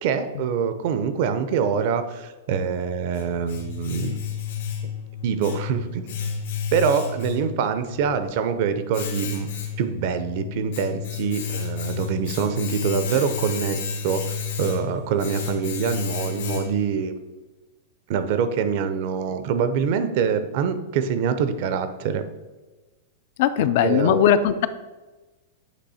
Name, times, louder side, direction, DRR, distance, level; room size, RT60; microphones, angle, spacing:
voice 1, 0.0-4.2 5.2-6.1 6.7-9.5 9.8-14.2 14.6-17.1 18.1-22.2 23.8-24.2, right 7 dB, 50° right, 10 dB, 0.6 m, -25 dB
Domestic sounds home sounds, 2.6-17.0, left 6 dB, 80° left, 1.1 m, -32 dB
voice 2, 23.4-24.7, left 9 dB, 55° left, 13 dB, 0.4 m, -19 dB
8.2 x 3.1 x 4.2 m, 1.2 s
supercardioid pair, 150°, 0 cm